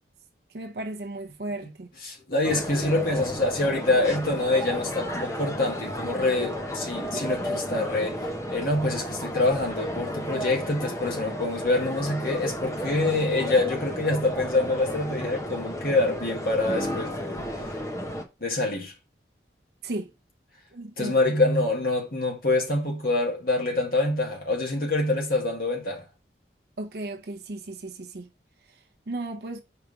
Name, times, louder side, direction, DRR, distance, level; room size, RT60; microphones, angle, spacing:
voice 1, 0.5-1.9 19.8-20.1 20.7-21.2 26.8-28.3 29.1-29.6, right 2 dB, 65° right, 0.6 m, -35 dB
voice 2, 2.0-17.4 18.4-18.9 21.0-26.0, left 2 dB, 55° left, 1.9 m, -26 dB
sound 1, 2.4-18.2, equal, 15° left, 0.8 m, -33 dB
4.9 x 4.7 x 4.8 m
head